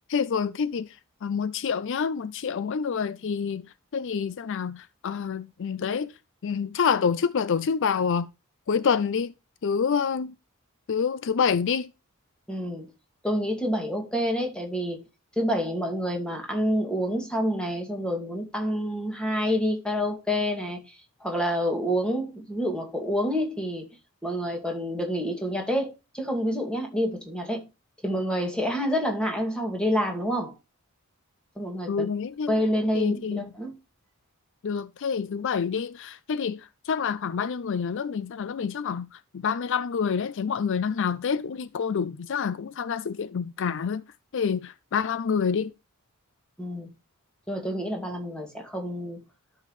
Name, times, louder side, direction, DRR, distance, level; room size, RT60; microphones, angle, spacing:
voice 1, 0.1-3.6 3.9-6.1 6.4-8.3 8.7-9.3 9.6-10.3 10.9-11.9 31.9-32.5 32.9-33.5 34.6-44.0 44.3-45.7, left 6 dB, 55° left, 0.4 m, -27 dB
voice 2, 12.5-12.9 13.2-15.0 15.4-20.8 21.2-23.9 24.2-27.6 28.0-30.5 31.6-32.0 32.5-33.7 46.6-46.9 47.5-49.2, equal, 5° left, 2.3 m, -28 dB
12.5 x 5.7 x 3.1 m
head